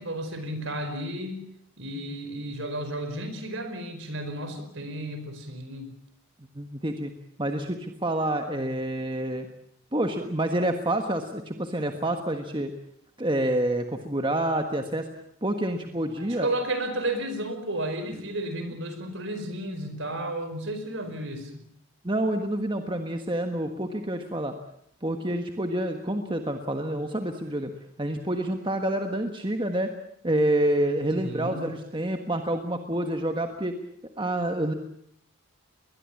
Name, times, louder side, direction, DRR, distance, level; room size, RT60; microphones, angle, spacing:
voice 1, 0.0-1.4 1.8-5.9 16.2-21.6 31.2-31.7, right 1 dB, 60° right, 8 dB, 4.9 m, -33 dB
voice 2, 6.5-7.1 7.4-9.5 9.9-12.7 13.2-15.1 15.4-16.5 18.5-18.7 22.0-24.5 25.0-27.7 28.0-29.9 30.2-33.8 34.2-34.7, right 1 dB, 20° right, 5 dB, 1.4 m, -28 dB
21.5 x 21.5 x 8.5 m, 0.70 s
head